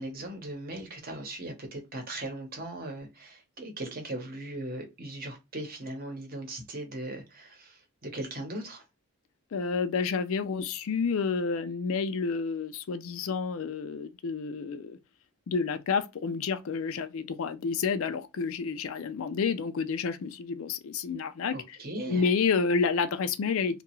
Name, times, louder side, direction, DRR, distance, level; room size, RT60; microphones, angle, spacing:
voice 1, 0.0-8.8 21.5-22.3, right 1 dB, 40° right, 0.9 m, -38 dB
voice 2, 9.5-15.0 15.5-21.8 22.1-23.8, left 5 dB, 65° left, 0.4 m, -29 dB
2.8 x 2.3 x 3.0 m
head